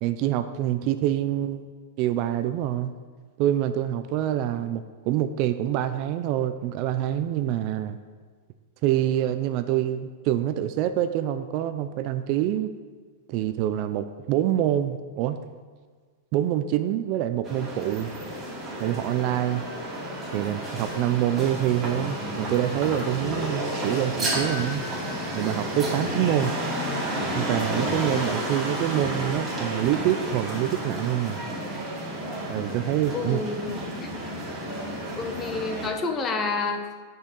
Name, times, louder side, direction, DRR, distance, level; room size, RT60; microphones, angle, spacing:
voice 1, 0.0-1.7 2.0-2.9 3.4-8.0 8.8-12.7 13.3-15.4 16.3-18.1 18.8-19.6 20.3-24.8 25.3-26.5 27.3-31.4 32.5-33.4, right 12 dB, 40° right, 10 dB, 0.4 m, -26 dB
sound 1, 17.4-35.9, right 1 dB, 15° right, 2.3 m, -31 dB
voice 2, 33.1-34.1 35.2-36.8, left 4 dB, 20° left, 5 dB, 0.9 m, -29 dB
7.9 x 5.5 x 6.7 m, 1.5 s
supercardioid pair, 150°, 0 cm